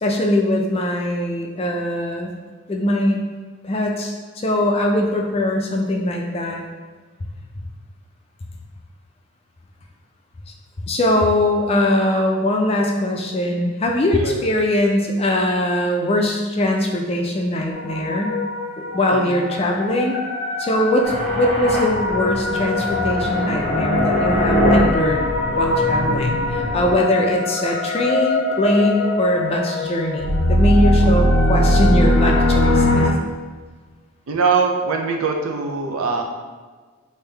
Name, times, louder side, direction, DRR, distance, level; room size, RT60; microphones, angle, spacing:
voice 1, 0.0-2.3 2.7-3.2 3.6-6.6 10.9-18.4 18.9-20.2 20.6-25.3 25.5-33.1, left 1 dB, 30° left, 1 dB, 0.4 m, -21 dB
sound 1, 17.7-33.1, left 2 dB, 80° left, 0.6 m, -21 dB
sound 2, 21.0-26.9, equal, 25° right, 1.3 m, -23 dB
voice 2, 34.3-36.2, right 4 dB, 75° right, 2 dB, 0.5 m, -22 dB
3.4 x 2.7 x 3.3 m, 1.4 s
head